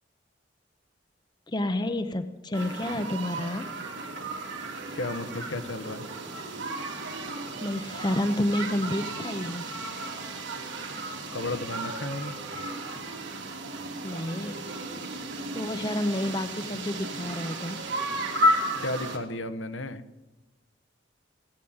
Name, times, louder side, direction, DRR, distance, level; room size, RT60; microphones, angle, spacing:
voice 1, 1.5-3.7 7.6-9.7 14.0-14.7 15.5-17.8, left 1 dB, 25° left, 9 dB, 0.7 m, -29 dB
sound 1, 2.5-19.2, right 1 dB, 80° right, 3.0 m, -33 dB
voice 2, 4.9-6.0 11.3-12.3 18.8-20.0, left 2 dB, 80° left, 9 dB, 1.1 m, -33 dB
18.0 x 9.1 x 8.8 m, 1.1 s
head